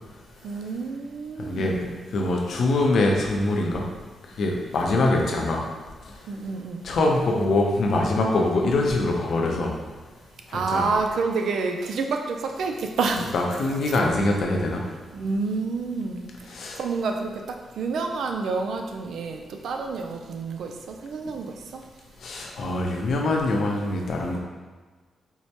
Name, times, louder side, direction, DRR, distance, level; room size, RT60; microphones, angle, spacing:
voice 1, 0.4-2.0 5.3-5.4 6.3-6.8 10.5-13.3 15.1-16.3 16.8-21.8, right 4 dB, 75° right, 4 dB, 0.3 m, -28 dB
voice 2, 1.4-1.8 2.1-3.9 4.4-5.6 6.8-9.7 10.5-10.9 13.3-14.8 16.5-16.8 22.2-24.4, left 2 dB, 70° left, 0 dB, 0.6 m, -23 dB
4.5 x 2.1 x 2.8 m, 1.4 s
cardioid pair, 95°, 0 cm